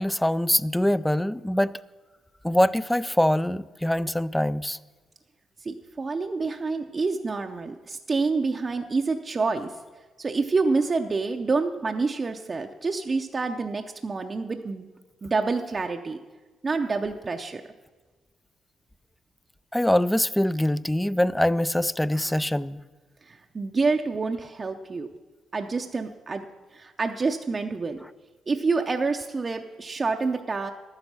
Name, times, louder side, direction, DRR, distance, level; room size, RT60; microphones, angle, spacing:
voice 1, 0.0-1.7 2.4-4.8 19.7-22.8, left 1 dB, 5° left, 0.3 m, -23 dB
voice 2, 5.6-9.7 10.2-14.9 15.2-16.2 16.6-17.6 23.3-25.1 25.5-28.0 28.5-30.7, right 4 dB, 30° right, 0.6 m, -27 dB
12.0 x 9.7 x 6.0 m
cardioid pair, 90°, 0 cm